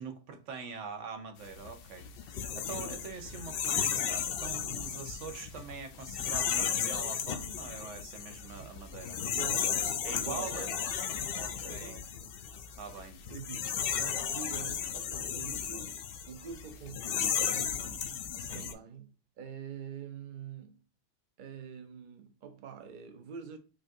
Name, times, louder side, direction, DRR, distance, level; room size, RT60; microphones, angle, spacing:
voice 1, 0.0-9.2 10.0-10.7 11.3-12.0 12.8-13.2 18.3-18.7, right 5 dB, 80° right, 1.1 m, -44 dB
sound 1, 1.5-18.7, left 8 dB, 60° left, 0.6 m, -34 dB
voice 2, 9.2-9.8 10.0-10.8 11.6-12.3 13.2-16.0 16.3-18.2 18.5-20.8 21.4-23.6, right 7 dB, 50° right, 0.7 m, -46 dB
5.1 x 2.4 x 2.6 m
omnidirectional pair, 1.2 m